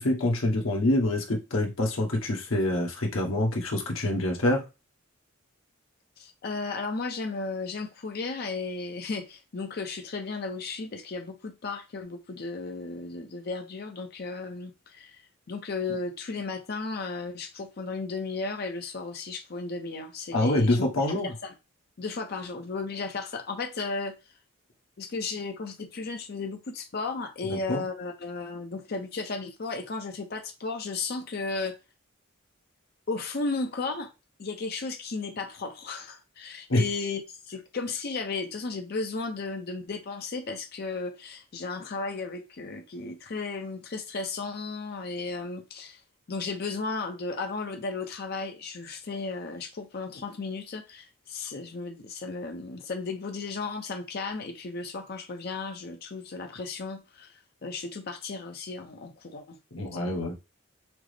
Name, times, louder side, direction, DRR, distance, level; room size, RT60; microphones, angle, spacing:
voice 1, 0.0-4.6 20.3-21.3 27.4-27.8 36.7-36.8 59.7-60.3, left 1 dB, 75° left, 1.1 m, -26 dB
voice 2, 6.2-15.2 15.5-20.9 21.2-21.5 22.0-24.1 25.0-31.8 33.1-34.1 34.4-37.2 37.5-46.0 46.3-59.6 60.0-60.2, left 3 dB, 50° left, 0.5 m, -34 dB
5.9 x 2.0 x 3.2 m
head